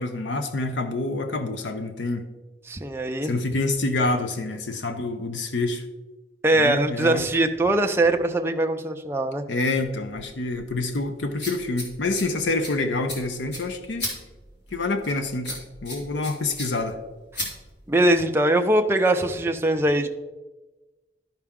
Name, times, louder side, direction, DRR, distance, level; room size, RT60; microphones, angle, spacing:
voice 1, 0.0-2.2 3.2-5.8 6.5-7.2 9.5-14.1 14.7-17.0, left 2 dB, 75° left, 7 dB, 0.7 m, -27 dB
voice 2, 2.7-3.3 6.4-9.4 17.9-20.1, right 1 dB, 15° right, 4 dB, 0.5 m, -21 dB
sound 1, 9.8-18.2, left 1 dB, 60° left, 2.4 m, -38 dB
12.0 x 5.7 x 3.6 m, 1.2 s
head